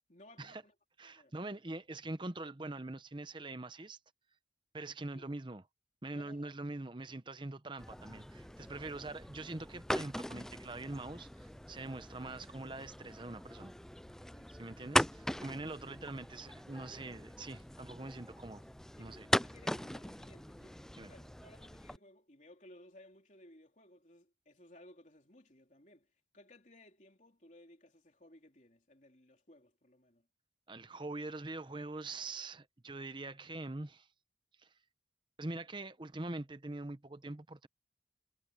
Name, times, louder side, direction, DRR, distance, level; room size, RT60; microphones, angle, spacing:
voice 1, 0.1-0.8 1.0-1.3 5.0-5.2 6.1-6.6 14.3-14.7 19.0-30.3, left 1 dB, 40° left, 3.5 m, -60 dB
voice 2, 1.0-4.0 4.7-5.6 6.0-13.7 14.5-18.6 19.0-19.3 21.0-21.1 30.7-34.1 34.6-34.7 35.4-37.7, right 2 dB, 25° right, 0.9 m, -43 dB
sound 1, 7.8-22.0, left 1 dB, 5° left, 0.3 m, -40 dB
head